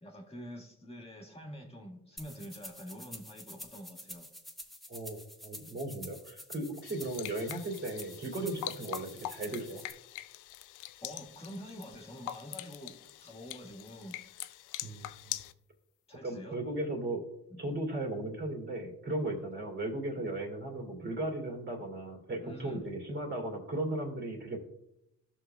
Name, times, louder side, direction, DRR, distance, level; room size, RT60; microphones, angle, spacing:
voice 1, 0.0-4.3 11.0-12.9 13.2-14.2 16.1-16.6 17.5-17.6 19.3-19.4 22.4-22.8, equal, 20° left, -1 dB, 1.6 m, -46 dB
sound 1, 2.2-9.9, left 1 dB, ahead, 1.1 m, -48 dB
voice 2, 4.9-9.8 14.8-15.4 16.2-17.2 17.6-24.6, right 2 dB, 40° right, 1 dB, 2.6 m, -36 dB
sound 2, 6.8-15.5, left 14 dB, 90° left, 0.5 m, -44 dB
13.5 x 6.1 x 2.3 m, 0.83 s
cardioid pair, 90°, 30 cm